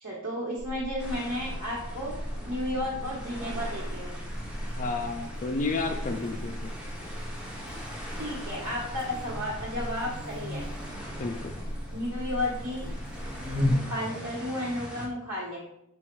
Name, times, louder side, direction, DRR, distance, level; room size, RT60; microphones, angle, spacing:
voice 1, 0.0-2.1 2.4-4.1 8.2-10.6 11.9-12.9 13.6-15.6, left 1 dB, 85° right, -7 dB, 1.1 m, -33 dB
Buzz, 0.6-13.7, left 1 dB, 45° right, 1.5 m, -37 dB
sound 1, 1.0-15.1, equal, 5° right, 0.7 m, -42 dB
voice 2, 4.8-6.7 11.2-11.5, left 3 dB, 35° left, 4 dB, 0.4 m, -31 dB
4.1 x 2.3 x 4.4 m, 0.78 s
head